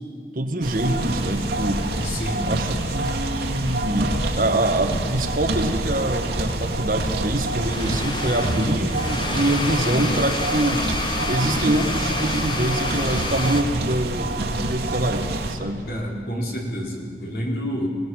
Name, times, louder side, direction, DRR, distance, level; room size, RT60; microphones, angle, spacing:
voice 1, 0.3-1.8 2.4-10.9 11.2-15.8, right 1 dB, 50° right, 6 dB, 1.2 m, -25 dB
sound 1, 0.6-15.6, right 2 dB, 75° right, 2.1 m, -27 dB
sound 2, 1.2-13.6, left 2 dB, 25° left, 1.2 m, -31 dB
voice 2, 1.9-2.5 15.9-17.9, equal, 55° left, -2 dB, 3.9 m, -29 dB
23.0 x 18.0 x 6.2 m, 2.5 s
head